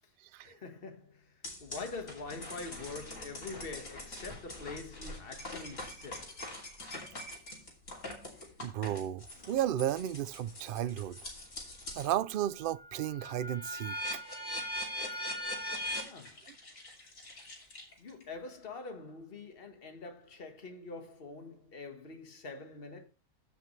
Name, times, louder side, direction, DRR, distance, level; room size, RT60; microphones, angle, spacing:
voice 1, 0.4-1.3 1.6-6.4 16.0-16.4 18.0-23.0, left 3 dB, 45° left, 1.8 m, -45 dB
sound 1, 1.4-12.1 12.6-18.2, left 1 dB, 70° left, 3.4 m, -42 dB
voice 2, 8.6-11.2 11.9-14.2, right 11 dB, 65° right, 0.5 m, -33 dB
15.0 x 5.8 x 3.2 m
omnidirectional pair, 1.4 m